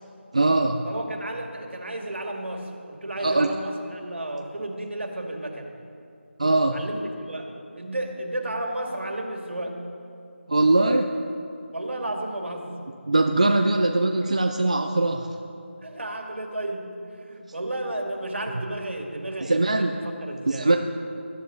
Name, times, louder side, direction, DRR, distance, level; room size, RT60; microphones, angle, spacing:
voice 1, 0.3-0.9 3.2-3.5 6.4-6.8 10.5-11.1 13.1-15.4 19.4-19.9 20.5-20.8, right 2 dB, 30° right, 4 dB, 0.5 m, -21 dB
voice 2, 0.8-5.7 6.7-9.8 11.7-12.7 15.8-20.7, right 1 dB, 65° right, 2 dB, 2.3 m, -33 dB
20.0 x 12.5 x 3.9 m, 2.5 s
figure-of-eight pair, 180°, 7 cm